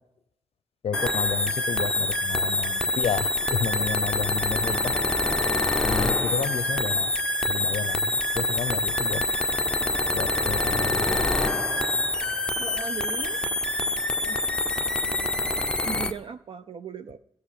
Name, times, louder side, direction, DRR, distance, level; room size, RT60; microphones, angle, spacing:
voice 1, 0.8-4.9 5.8-7.1 7.5-9.2 10.1-11.3, left 8 dB, 55° left, 19 dB, 0.6 m, -31 dB
sound 1, 0.9-16.1, left 2 dB, 5° left, 0.7 m, -26 dB
voice 2, 12.6-13.4 14.2-14.4 15.8-17.2, right 6 dB, 50° right, 11 dB, 0.5 m, -37 dB
15.5 x 6.6 x 9.8 m, 0.78 s
wide cardioid pair, 175°, 12 cm